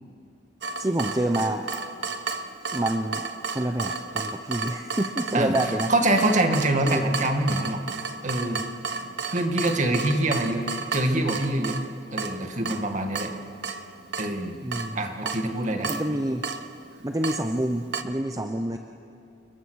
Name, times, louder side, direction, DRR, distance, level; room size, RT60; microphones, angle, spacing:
Water tap faucet / Drip, 0.6-18.0, right 4 dB, 65° right, 1.0 m, -34 dB
voice 1, 0.8-1.7 2.7-3.2 3.5-5.9 6.9-7.0 14.6-15.3 15.9-16.4 17.0-18.8, right 1 dB, 20° right, 5 dB, 0.8 m, -27 dB
voice 2, 5.9-7.8 8.2-8.6 9.3-11.8 12.1-13.3 14.2-14.6 15.0-15.9, right 1 dB, 40° right, 4 dB, 2.1 m, -25 dB
29.5 x 21.0 x 6.4 m, 2.4 s
head